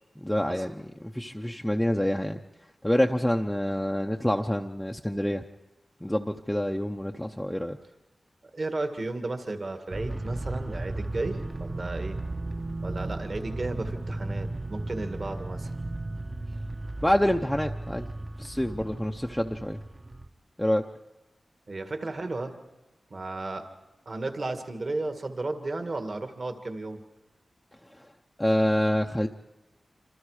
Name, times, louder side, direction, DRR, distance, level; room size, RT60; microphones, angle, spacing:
voice 1, 0.2-2.4 2.8-5.4 6.0-7.8 17.0-18.1 18.4-19.8 20.6-20.8 28.4-29.3, left 1 dB, 5° left, 2 dB, 0.7 m, -27 dB
voice 2, 8.4-12.2 12.8-15.7 21.7-22.5 23.1-23.6 24.1-27.0, right 2 dB, 45° right, 6 dB, 1.8 m, -34 dB
sound 1, 9.9-20.3, right 2 dB, 30° right, 0.9 m, -35 dB
27.5 x 26.0 x 4.9 m, 1.0 s
wide cardioid pair, 120°, 0 cm